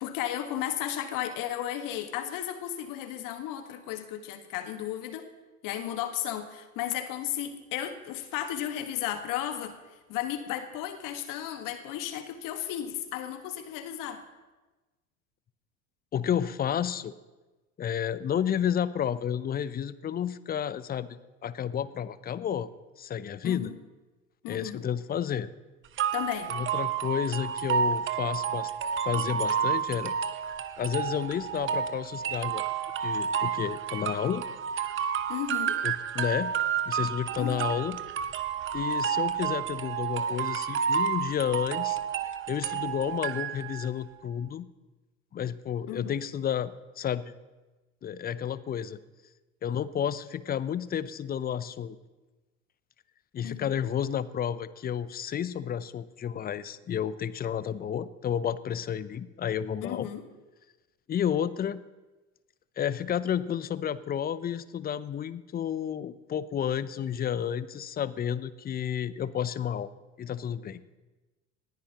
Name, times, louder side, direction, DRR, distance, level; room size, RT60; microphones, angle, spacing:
voice 1, 0.0-5.3 5.6-9.8 10.1-14.2 23.4-23.8 24.4-24.8 26.1-26.5 35.3-35.8 37.4-37.7 45.9-46.2 53.4-53.7 59.8-60.3, left 11 dB, 50° left, 7 dB, 1.7 m, -34 dB
voice 2, 16.1-17.1 17.8-22.7 23.0-23.7 24.5-25.5 26.5-28.7 29.0-30.1 30.8-32.6 33.0-34.4 35.8-36.5 36.9-38.0 38.7-42.0 42.5-44.7 45.3-47.3 48.0-49.0 49.6-52.0 53.3-60.1 61.1-61.8 62.8-69.9 70.2-70.8, left 9 dB, 20° left, 16 dB, 0.7 m, -31 dB
sound 1, 26.0-43.9, right 7 dB, 30° right, 0.9 m, -30 dB
20.0 x 14.5 x 3.0 m, 1.2 s
figure-of-eight pair, 75°, 41 cm